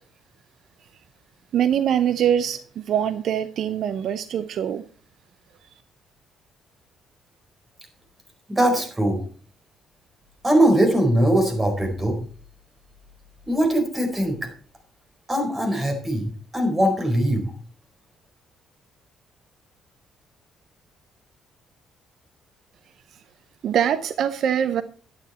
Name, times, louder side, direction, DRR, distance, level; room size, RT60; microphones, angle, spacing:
voice 1, 1.5-4.8 23.6-24.8, right 9 dB, 65° right, 0.6 m, -23 dB
voice 2, 8.5-9.2 10.4-12.2 13.5-14.4 15.3-17.4, right 1 dB, 15° right, 4.4 m, -21 dB
11.5 x 9.2 x 4.3 m
cardioid pair, 110°, 0 cm